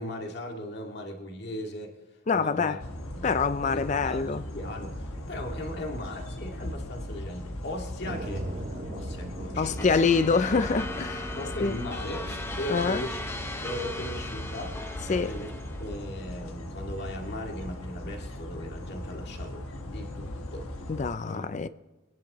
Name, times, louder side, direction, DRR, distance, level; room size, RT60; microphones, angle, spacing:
voice 1, 0.0-2.0 2.3-2.8 3.1-10.0 10.3-10.4 11.3-13.2 13.6-14.8 15.1-15.5 15.8-20.7 21.2-21.7, left 1 dB, 50° left, 2.0 m, -38 dB
voice 2, 2.3-2.8 3.2-4.4 9.6-11.3 11.6-11.8 12.7-13.0 15.1-15.3 20.9-21.7, left 4 dB, 35° left, 0.4 m, -25 dB
sound 1, 2.8-21.1, left 1 dB, 75° left, 1.3 m, -38 dB
sound 2, 8.0-12.9, right 2 dB, 40° right, 0.8 m, -41 dB
sound 3, 9.8-16.0, left 1 dB, 10° left, 0.9 m, -38 dB
23.0 x 10.5 x 3.0 m
head